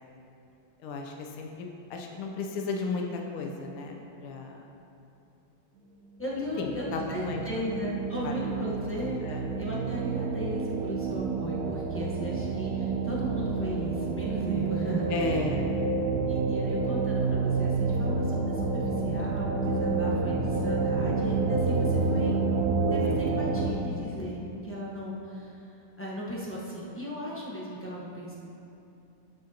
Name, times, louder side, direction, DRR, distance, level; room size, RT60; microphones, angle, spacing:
voice 1, 0.8-4.6 6.4-7.6 8.2-8.3 9.2-9.5 15.1-15.8 23.5-23.6, left 4 dB, 90° left, 2 dB, 1.6 m, -34 dB
voice 2, 6.2-15.5 16.2-22.4 22.9-28.3, equal, 20° left, -6 dB, 0.3 m, -36 dB
sound 1, 6.4-23.7, right 4 dB, 85° right, 0.8 m, -29 dB
13.0 x 6.3 x 2.8 m, 2.8 s
omnidirectional pair, 2.3 m